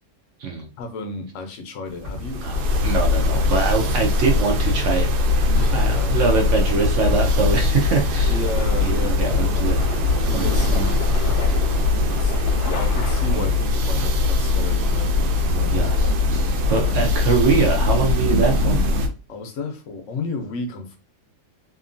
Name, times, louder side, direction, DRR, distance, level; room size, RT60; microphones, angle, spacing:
voice 1, 0.8-2.6 5.5-6.2 8.3-9.5 10.4-10.8 11.5-12.3 12.6-16.1 16.7-17.1 19.3-21.0, left 3 dB, 65° left, 5 dB, 0.8 m, -33 dB
sound 1, 2.0-12.3, left 2 dB, 35° right, 0.8 m, -36 dB
sound 2, 2.1-19.1, left 3 dB, 80° right, 1.1 m, -21 dB
voice 2, 2.4-8.4 8.8-9.8 10.3-11.0 13.3-13.5 15.7-18.8, right 5 dB, 65° right, 2 dB, 0.8 m, -24 dB
sound 3, 6.1-13.7, left 5 dB, 80° left, 1.3 m, -36 dB
2.8 x 2.5 x 2.5 m, 0.31 s
omnidirectional pair, 1.7 m